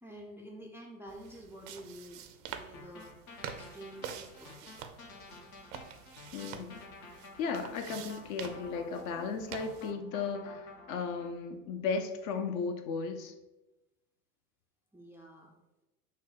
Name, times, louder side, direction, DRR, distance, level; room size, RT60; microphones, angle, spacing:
voice 1, 0.0-3.2 3.5-4.7 14.9-15.5, right 1 dB, 5° right, -2 dB, 0.4 m, -49 dB
sound 1, 1.1-9.9, right 8 dB, 50° right, 0.6 m, -47 dB
sound 2, 2.7-11.3, left 3 dB, 65° left, 1.2 m, -51 dB
voice 2, 6.3-6.8 7.4-13.3, left 5 dB, 45° left, 7 dB, 0.6 m, -35 dB
6.2 x 2.1 x 4.0 m, 1.0 s
hypercardioid pair, 80°, 45 cm